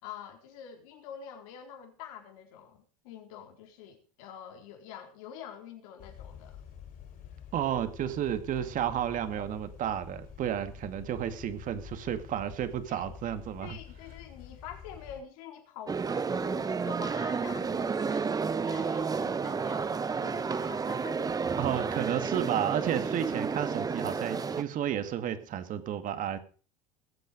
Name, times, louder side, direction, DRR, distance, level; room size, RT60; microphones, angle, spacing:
voice 1, 0.0-6.6 12.9-13.1 13.6-18.3 18.6-21.3, left 8 dB, 75° left, 3 dB, 4.2 m, -46 dB
sound 1, 6.0-15.2, left 9 dB, 55° left, 6.1 m, -48 dB
voice 2, 7.5-13.8 21.6-26.4, right 10 dB, 50° right, 10 dB, 2.2 m, -32 dB
sound 2, 15.9-24.6, right 5 dB, 20° right, 0.9 m, -31 dB
20.5 x 8.3 x 5.3 m, 0.40 s
supercardioid pair, 95°, 18 cm